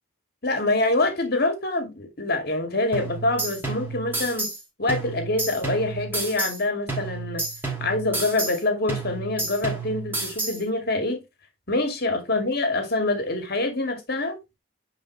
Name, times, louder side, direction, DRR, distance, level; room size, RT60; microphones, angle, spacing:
voice 1, 0.4-4.5 4.8-7.5 7.8-11.2 11.7-14.4, left 2 dB, 45° left, 2.2 m, -25 dB
sound 1, 2.9-4.6 4.9-6.6 6.9-8.6 8.9-10.6, right 3 dB, 10° right, 2.8 m, -30 dB
9.2 x 4.8 x 3.1 m
head